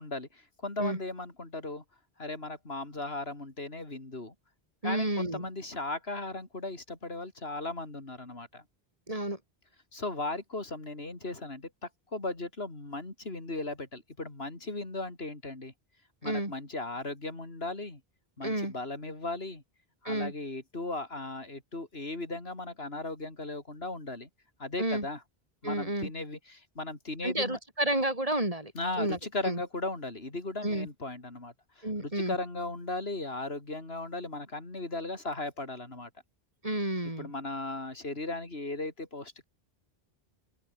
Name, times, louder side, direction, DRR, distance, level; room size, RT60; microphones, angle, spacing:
voice 1, 0.0-1.8 2.2-4.3 4.8-8.6 9.9-11.7 12.1-15.7 16.2-18.0 18.4-19.6 20.0-24.3 24.6-25.2 25.6-27.6 28.7-36.1 37.2-39.4, left 2 dB, 70° left, 4.1 m, -37 dB
voice 2, 4.8-5.5 9.1-9.4 16.2-16.5 18.4-18.7 20.1-20.3 24.8-25.1 25.6-26.1 27.2-28.7 29.0-29.2 29.4-29.6 30.6-30.9 31.8-32.4 36.6-37.3, right 1 dB, 35° right, 3.6 m, -30 dB
open air
omnidirectional pair, 1.1 m